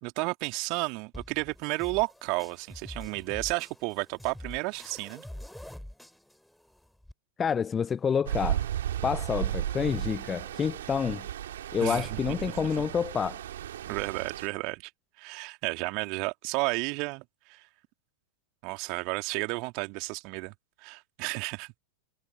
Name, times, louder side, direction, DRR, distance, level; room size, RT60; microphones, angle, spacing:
voice 1, 0.0-5.2 11.8-12.1 13.9-14.9 15.2-17.2 17.5-17.6 18.6-20.5 20.8-21.7, right 30 dB, 45° right, 2.5 m, -32 dB
sound 1, 1.1-7.1, left 1 dB, ahead, 4.7 m, -46 dB
voice 2, 7.4-8.7 9.0-11.3 11.7-13.4, left 7 dB, 20° left, 0.7 m, -28 dB
Stream, 8.3-14.5, right 11 dB, 60° right, 2.8 m, -34 dB
figure-of-eight pair, 90°, 0 cm